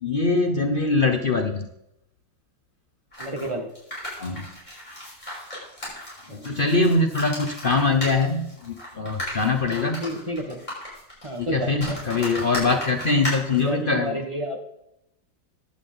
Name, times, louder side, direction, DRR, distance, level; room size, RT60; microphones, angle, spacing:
voice 1, 0.0-1.7 4.2-4.5 6.3-10.1 11.4-14.2, left 3 dB, 85° left, 6 dB, 0.4 m, -23 dB
sound 1, 3.1-13.7, left 1 dB, 20° left, 5.9 m, -35 dB
voice 2, 3.2-3.7 6.3-6.5 10.0-10.6 11.2-12.0 13.5-14.6, equal, 20° right, 3 dB, 1.2 m, -30 dB
15.0 x 11.0 x 3.9 m, 0.82 s
omnidirectional pair, 2.2 m